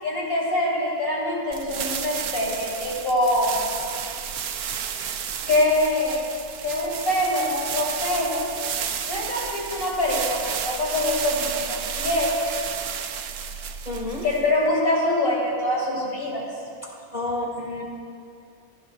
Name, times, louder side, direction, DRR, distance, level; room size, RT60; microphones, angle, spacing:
voice 1, 0.0-3.7 5.5-6.2 6.6-8.4 9.1-12.3 14.2-16.5, left 1 dB, 70° left, -5 dB, 4.4 m, -24 dB
sound 1, 1.5-14.6, right 8 dB, 75° right, 1.2 m, -32 dB
voice 2, 13.9-14.2 17.1-17.8, left 2 dB, 30° right, -3 dB, 2.5 m, -29 dB
28.0 x 15.5 x 2.5 m, 2.5 s
omnidirectional pair, 1.6 m